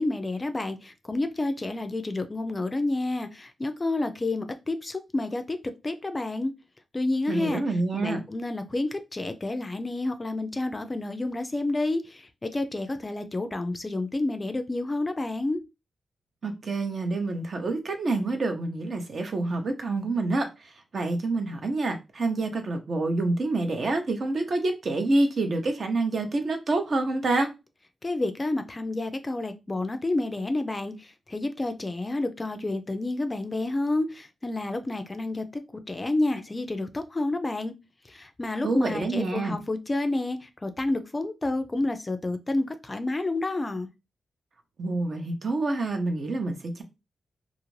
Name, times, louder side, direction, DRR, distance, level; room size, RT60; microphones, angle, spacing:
voice 1, 0.0-5.6 5.8-6.5 6.9-7.6 7.9-15.6 28.0-35.6 35.9-37.7 38.0-43.9, left 2 dB, 25° left, 0.4 m, -29 dB
voice 2, 7.3-8.2 16.4-27.5 38.6-39.6 44.8-46.8, right 2 dB, 55° right, 0.6 m, -27 dB
2.5 x 2.5 x 3.1 m
cardioid pair, 90°, 0 cm